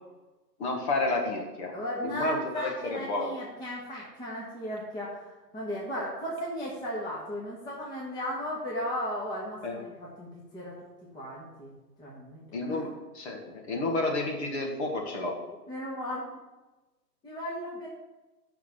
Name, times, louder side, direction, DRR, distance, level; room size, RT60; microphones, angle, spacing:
voice 1, 0.6-1.7 2.0-3.3 9.6-9.8 12.5-15.4, left 2 dB, 40° left, 1 dB, 2.2 m, -31 dB
voice 2, 1.7-5.3 5.5-10.7 11.1-11.7 12.0-12.4 15.7-16.2 17.2-17.9, equal, 10° left, -5 dB, 1.4 m, -35 dB
8.3 x 6.3 x 6.9 m, 1.1 s
figure-of-eight pair, 135°, 49 cm